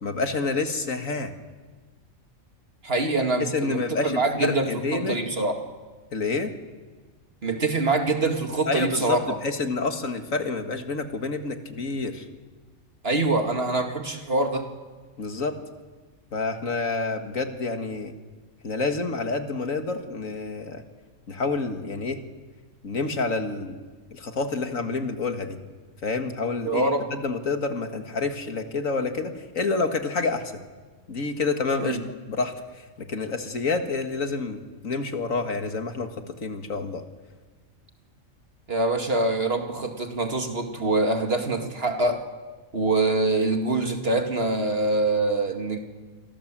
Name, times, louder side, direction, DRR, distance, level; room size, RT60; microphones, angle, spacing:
voice 1, 0.0-1.3 3.4-5.2 6.1-6.5 8.7-12.3 15.2-15.6 16.3-18.1 18.6-20.8 21.3-22.2 22.8-23.8 24.1-25.6 26.0-30.6 31.1-32.0 32.3-37.0, left 3 dB, 80° left, 6 dB, 2.3 m, -28 dB
voice 2, 2.8-5.6 7.4-9.4 13.0-14.7 26.6-27.1 31.8-32.0 38.7-42.3 42.7-45.8, right 2 dB, 50° right, 5 dB, 2.4 m, -24 dB
28.0 x 24.0 x 7.6 m, 1.4 s
omnidirectional pair, 1.4 m